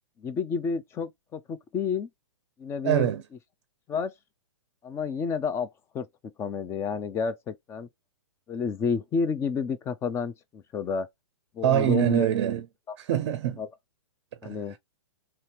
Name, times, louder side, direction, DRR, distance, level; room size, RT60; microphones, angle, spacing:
voice 1, 0.2-2.1 2.6-3.1 3.9-4.1 4.8-5.7 5.9-6.1 6.4-7.9 8.5-11.1 11.5-12.3 12.9-13.0 13.6-13.7 14.4-14.8, left 5 dB, 15° left, 0.4 m, -30 dB
voice 2, 2.8-3.2 11.6-12.7 13.0-13.6 14.4-14.8, right 11 dB, 50° right, 0.5 m, -24 dB
2.9 x 2.8 x 3.1 m
hypercardioid pair, 125°, 16 cm